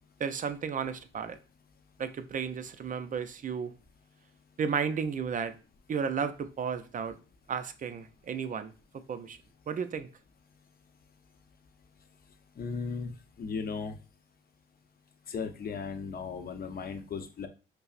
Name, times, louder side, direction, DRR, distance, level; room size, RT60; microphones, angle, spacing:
voice 1, 0.2-1.4 2.0-3.7 4.6-5.6 5.9-7.2 7.5-9.4 9.7-10.1, right 6 dB, 40° right, 0.4 m, -33 dB
voice 2, 12.6-13.1 13.4-14.0 15.3-17.5, left 5 dB, 45° left, 0.6 m, -36 dB
5.4 x 2.0 x 2.4 m
cardioid pair, 90°, 21 cm